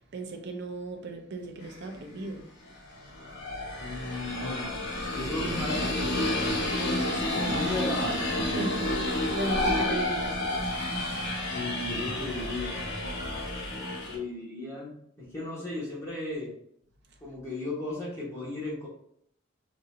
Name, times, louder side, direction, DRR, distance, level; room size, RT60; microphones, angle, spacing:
voice 1, 0.1-3.9 6.8-7.7 8.5-10.4, right 2 dB, 55° right, 0.6 m, -37 dB
sound 1, 1.7-1.8 2.9-14.2, left 1 dB, 60° left, 1.0 m, -30 dB
voice 2, 3.8-4.8 5.1-6.6 7.3-8.2 11.5-12.8 14.1-14.9 15.2-16.5 17.2-18.9, left 2 dB, 15° left, 1.3 m, -35 dB
3.9 x 2.6 x 2.6 m
head